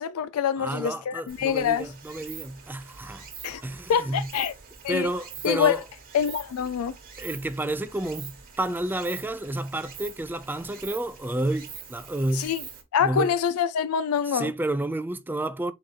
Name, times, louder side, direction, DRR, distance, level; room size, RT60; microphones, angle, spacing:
voice 1, 0.0-1.9 3.4-3.6 3.9-4.5 4.8-5.1 5.4-5.8 6.1-6.9 12.3-12.6 12.9-14.5, left 8 dB, 75° left, 0.4 m, -25 dB
voice 2, 0.6-3.2 3.6-4.3 4.9-5.8 7.2-12.5 13.0-13.3 14.3-15.7, right 1 dB, 10° right, 0.3 m, -30 dB
Stream, 1.3-12.8, right 7 dB, 40° right, 1.2 m, -44 dB
4.0 x 3.7 x 3.2 m
head